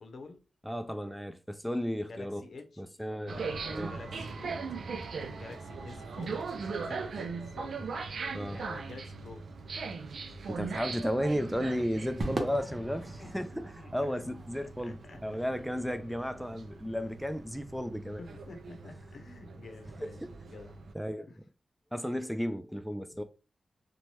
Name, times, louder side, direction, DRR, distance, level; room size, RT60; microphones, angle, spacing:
voice 1, 0.0-0.4 2.1-4.6 5.3-9.4 11.7-12.1 13.2-13.3 13.8-14.1 14.6-15.4 18.2-20.2 20.5-20.7 21.3-21.4, left 3 dB, 75° left, 0.7 m, -49 dB
voice 2, 0.7-2.4 2.8-3.4 3.7-3.9 7.8-7.9 8.3-8.6 10.5-18.2 20.0-20.3 20.9-21.3 21.9-23.2, equal, ahead, 0.3 m, -34 dB
sound 1, 3.3-20.9, right 4 dB, 80° right, 0.3 m, -40 dB
Crowd / Fireworks, 12.2-16.7, right 2 dB, 60° right, 0.7 m, -41 dB
2.7 x 2.2 x 3.1 m
cardioid pair, 60°, 0 cm